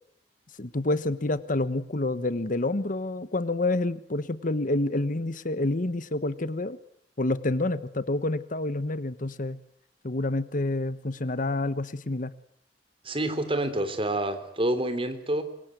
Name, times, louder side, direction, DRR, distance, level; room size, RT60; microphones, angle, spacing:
voice 1, 0.6-6.8 7.2-9.6 10.0-12.3, left 2 dB, 50° left, 14 dB, 1.2 m, -28 dB
voice 2, 13.0-15.4, right 1 dB, 30° right, 10 dB, 3.5 m, -28 dB
26.0 x 23.0 x 9.3 m, 0.68 s
head